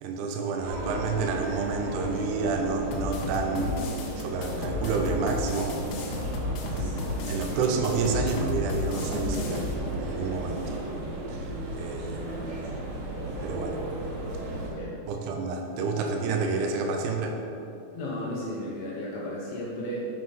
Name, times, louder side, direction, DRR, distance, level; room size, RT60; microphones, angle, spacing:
voice 1, 0.0-3.8 4.2-5.8 6.7-7.0 7.3-9.7 10.0-10.8 11.3-12.2 13.4-13.8 15.1-17.4, right 4 dB, 90° right, 2 dB, 2.2 m, -29 dB
sound 1, 0.6-14.7, right 1 dB, 60° right, 3.1 m, -35 dB
sound 2, 2.9-9.7, left 3 dB, 85° left, 3.5 m, -34 dB
voice 2, 17.9-20.1, left 1 dB, 65° left, -6 dB, 2.6 m, -34 dB
8.0 x 5.9 x 5.4 m, 2.7 s
omnidirectional pair, 5.6 m